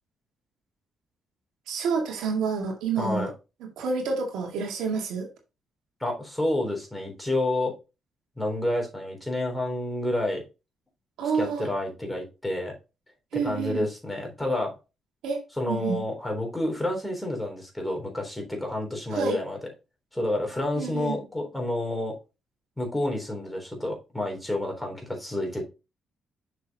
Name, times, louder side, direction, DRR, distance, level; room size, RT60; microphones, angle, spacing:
voice 1, 1.7-3.3 3.8-5.3 11.2-11.7 13.3-13.9 15.2-15.4 15.7-16.0 19.1-19.4 20.8-21.2, right 5 dB, 85° right, 2.2 m, -28 dB
voice 2, 3.0-3.3 6.0-7.7 8.4-10.4 11.4-12.7 13.4-14.7 15.6-19.6 20.1-22.2 22.8-25.6, left 1 dB, 5° left, 3.4 m, -29 dB
6.7 x 6.3 x 2.9 m
cardioid pair, 90°, 0 cm